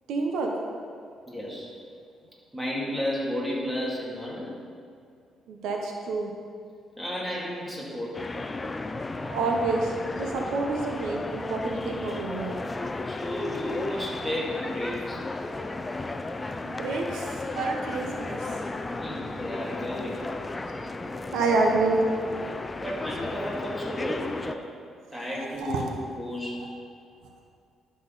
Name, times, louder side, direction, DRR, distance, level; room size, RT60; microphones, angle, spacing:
voice 1, 0.1-0.5 5.5-6.3 9.2-12.6 16.6-18.5 21.3-22.2 25.6-25.8 26.6-26.7, right 3 dB, 80° right, 1 dB, 1.0 m, -28 dB
voice 2, 1.3-1.7 2.5-4.5 7.0-8.2 13.0-15.2 15.5-16.0 19.0-20.2 22.8-24.6 25.1-26.7, equal, 5° right, -5 dB, 2.6 m, -33 dB
sound 1, 8.1-24.5, left 2 dB, 20° left, 0.5 m, -34 dB
11.5 x 6.3 x 4.1 m, 2.3 s
cardioid pair, 90°, 0 cm